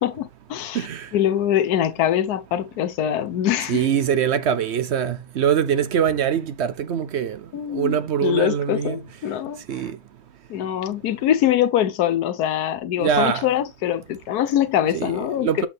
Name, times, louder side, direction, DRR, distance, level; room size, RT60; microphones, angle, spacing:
voice 1, 0.0-3.9 7.5-9.8 10.5-15.7, left 11 dB, 80° left, 1.3 m, -23 dB
voice 2, 0.7-1.1 3.7-7.4 7.7-9.0 9.7-9.9 13.0-13.4 14.9-15.1 15.4-15.7, right 8 dB, 60° right, 0.7 m, -23 dB
7.2 x 5.8 x 3.5 m
omnidirectional pair, 1.6 m